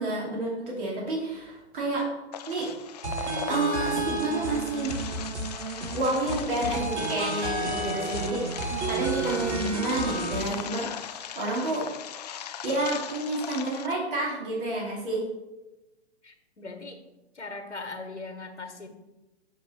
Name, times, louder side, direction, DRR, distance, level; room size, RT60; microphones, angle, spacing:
voice 1, 0.0-2.1 2.5-2.7 3.5-5.0 5.9-11.9 12.6-15.2, right 2 dB, 50° right, -4 dB, 2.8 m, -30 dB
sound 1, 2.3-13.9, left 9 dB, 40° left, 0.4 m, -39 dB
sound 2, 3.0-10.4, right 2 dB, 75° right, 1.7 m, -31 dB
voice 2, 16.2-17.0 17.3-18.9, left 3 dB, 85° left, 6 dB, 1.4 m, -39 dB
7.0 x 6.0 x 4.3 m, 1.0 s
figure-of-eight pair, 120°, 34 cm